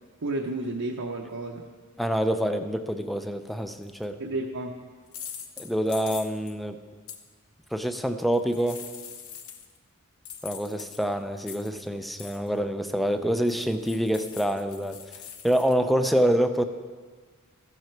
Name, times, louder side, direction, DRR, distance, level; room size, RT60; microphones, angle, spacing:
voice 1, 0.2-1.7 4.2-4.7, right 2 dB, 75° right, -1 dB, 0.8 m, -31 dB
voice 2, 2.0-4.2 5.6-6.8 7.7-8.8 10.4-15.0 15.4-16.6, equal, ahead, 8 dB, 0.4 m, -26 dB
sound 1, 3.8-4.0 5.1-6.6 7.1-7.2 8.3-9.8 10.2-11.9 12.2-12.5 13.5-15.7, left 8 dB, 70° left, 0.9 m, -42 dB
14.5 x 7.6 x 4.6 m, 1.5 s
head